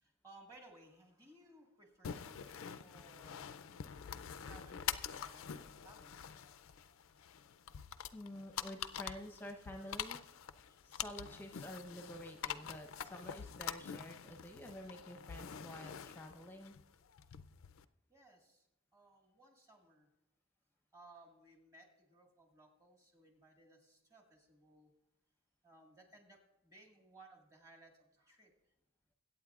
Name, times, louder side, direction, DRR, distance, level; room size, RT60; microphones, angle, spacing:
voice 1, 0.0-3.5 4.4-6.3 10.7-10.8 18.1-18.7 18.9-20.1 20.9-24.9 25.6-28.5, right 2 dB, 15° right, 1 dB, 1.6 m, -61 dB
sound 1, 2.0-17.8, left 8 dB, 65° left, 0.4 m, -46 dB
voice 2, 8.1-10.2 10.8-16.7, equal, 10° left, 3 dB, 0.8 m, -49 dB
22.0 x 8.7 x 2.4 m, 0.88 s
head